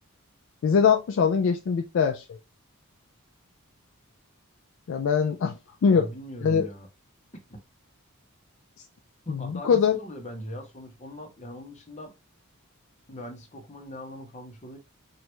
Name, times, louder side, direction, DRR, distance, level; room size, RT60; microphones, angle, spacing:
voice 1, 0.6-2.3 4.9-5.6 5.8-6.1 6.4-6.7 9.3-10.0, left 6 dB, 60° left, 0.3 m, -22 dB
voice 2, 5.9-6.9 7.5-7.6 9.3-12.1 13.1-14.8, equal, 30° left, 0.7 m, -40 dB
3.0 x 2.4 x 3.0 m
head